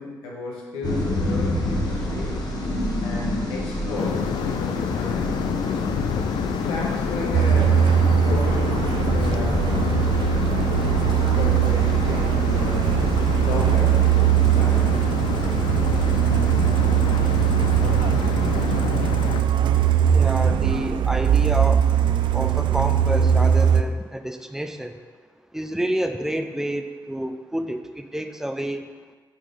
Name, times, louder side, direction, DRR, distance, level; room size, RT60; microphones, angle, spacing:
voice 1, 0.0-2.4 3.0-5.4 6.6-7.9 8.2-10.5 11.4-12.9 13.4-14.1 14.5-15.1, left 2 dB, 90° left, -3 dB, 1.4 m, -34 dB
sound 1, 0.8-18.8, left 1 dB, 50° left, 1.5 m, -29 dB
sound 2, 4.0-19.4, left 8 dB, 70° left, 0.4 m, -28 dB
Truck, 7.3-23.8, right 10 dB, 65° right, 0.4 m, -20 dB
voice 2, 20.1-25.0 25.5-28.9, right 1 dB, 5° right, 7 dB, 0.6 m, -29 dB
6.3 x 4.1 x 5.4 m, 1.5 s
supercardioid pair, 55°, 9 cm